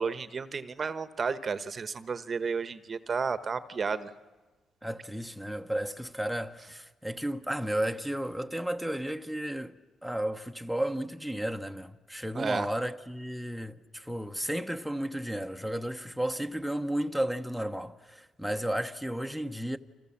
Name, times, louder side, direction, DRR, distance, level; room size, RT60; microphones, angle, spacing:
voice 1, 0.0-4.1 12.3-12.7, right 5 dB, 40° right, 1.1 m, -32 dB
voice 2, 4.8-9.7 10.0-19.8, right 1 dB, ahead, 1.0 m, -33 dB
29.5 x 26.0 x 7.3 m
cardioid pair, 90°, 0 cm